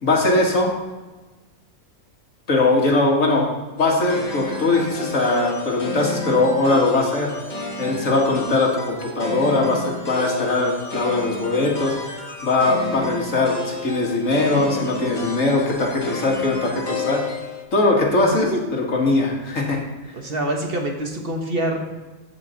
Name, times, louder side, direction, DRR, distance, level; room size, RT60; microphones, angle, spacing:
voice 1, 0.0-0.7 2.5-3.5 3.8-7.3 7.8-11.9 12.4-17.2 17.7-19.8, left 2 dB, 70° left, -1 dB, 2.1 m, -20 dB
sound 1, 3.8-17.6, left 3 dB, 35° left, 1.3 m, -31 dB
voice 2, 18.2-18.6 20.1-21.8, right 1 dB, 45° right, 2 dB, 1.3 m, -25 dB
15.0 x 5.1 x 4.0 m, 1.2 s
omnidirectional pair, 1.4 m